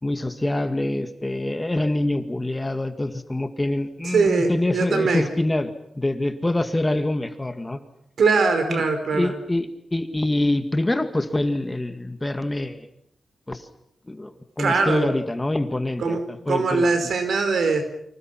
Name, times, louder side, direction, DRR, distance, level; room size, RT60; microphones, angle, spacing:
voice 1, 0.0-7.8 8.7-8.8 9.1-12.9 13.5-13.7 14.1-16.9, left 1 dB, 15° left, 8 dB, 2.0 m, -25 dB
voice 2, 4.0-5.3 8.2-9.3 14.6-15.1 16.0-16.2 16.5-17.8, right 4 dB, 75° right, 7 dB, 5.0 m, -21 dB
30.0 x 25.5 x 5.9 m, 0.71 s
wide cardioid pair, 115°, 0 cm